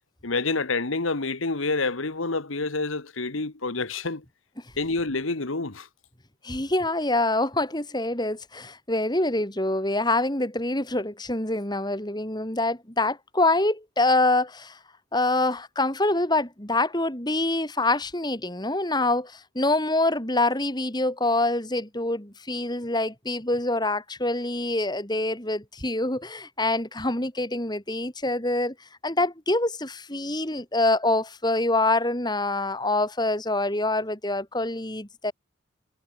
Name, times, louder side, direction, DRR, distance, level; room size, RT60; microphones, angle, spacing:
voice 1, 0.2-4.2 4.8-5.9, left 3 dB, 85° left, 1.6 m, -28 dB
voice 2, 6.4-14.8 15.1-28.7 29.0-35.3, left 2 dB, 20° left, 3.3 m, -25 dB
head